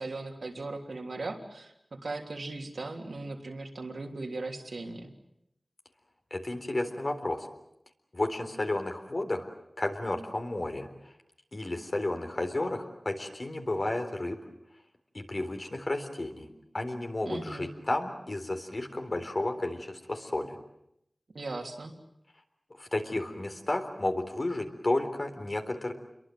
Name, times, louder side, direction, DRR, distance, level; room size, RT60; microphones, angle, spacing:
voice 1, 0.0-1.7 2.0-5.1 17.2-17.7 21.3-21.9, right 2 dB, 85° right, 2 dB, 3.3 m, -38 dB
voice 2, 6.3-7.5 8.1-9.5 9.8-10.9 11.5-14.4 15.1-16.5 16.7-20.6 22.8-25.9, left 2 dB, 50° left, 5 dB, 3.8 m, -32 dB
28.5 x 23.0 x 7.7 m, 0.79 s
wide cardioid pair, 55°, 0 cm